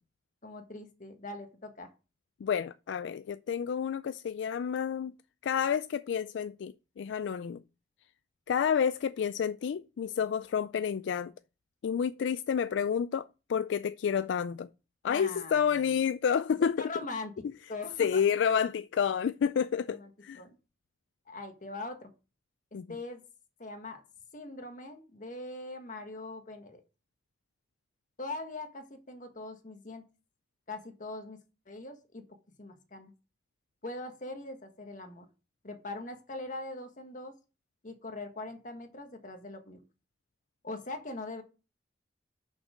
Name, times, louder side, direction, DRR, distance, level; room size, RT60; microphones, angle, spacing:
voice 1, 0.4-1.9 15.1-15.9 16.6-17.3 17.7-18.2 19.9-20.1 20.4-20.5 21.3-22.1 22.9-23.2 23.6-24.0 24.3-26.8 28.2-30.0 30.7-31.4 31.7-32.2 32.6-33.1 33.8-35.3 35.6-37.3 37.8-39.8 40.6-41.4, left 2 dB, 45° left, 1.5 m, -41 dB
voice 2, 2.4-5.1 5.4-7.6 8.5-11.3 11.8-14.7 15.0-16.9 18.0-20.4 22.7-22.9, left 7 dB, 75° left, 0.3 m, -29 dB
6.5 x 5.8 x 6.3 m
head